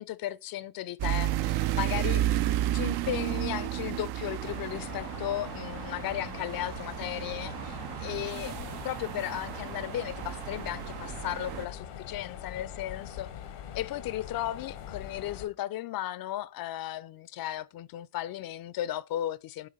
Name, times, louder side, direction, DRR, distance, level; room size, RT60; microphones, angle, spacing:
voice 1, 0.0-2.2 2.7-13.3 13.7-19.7, left 13 dB, 50° left, 0.5 m, -35 dB
sound 1, 1.0-11.7, right 13 dB, 55° right, 0.5 m, -32 dB
Mechanisms, 4.4-15.4, left 9 dB, 85° left, 1.0 m, -43 dB
8.0 x 2.8 x 4.1 m
hypercardioid pair, 50°, 48 cm